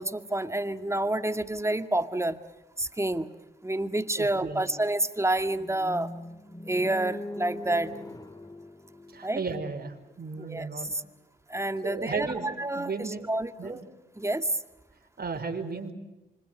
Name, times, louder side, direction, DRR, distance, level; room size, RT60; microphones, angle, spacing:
voice 1, 0.0-2.4 2.8-3.3 3.6-6.1 6.6-7.9 9.2-9.4 10.4-11.0 11.5-13.8 14.2-14.5, right 1 dB, 15° right, 9 dB, 2.1 m, -29 dB
voice 2, 4.2-4.7 9.1-11.0 11.8-13.3 13.6-13.8 15.2-15.9, right 4 dB, 50° right, 4 dB, 5.1 m, -35 dB
sound 1, 5.5-9.7, left 1 dB, 20° left, 1.8 m, -41 dB
26.5 x 25.0 x 8.0 m, 1.1 s
cardioid pair, 60°, 20 cm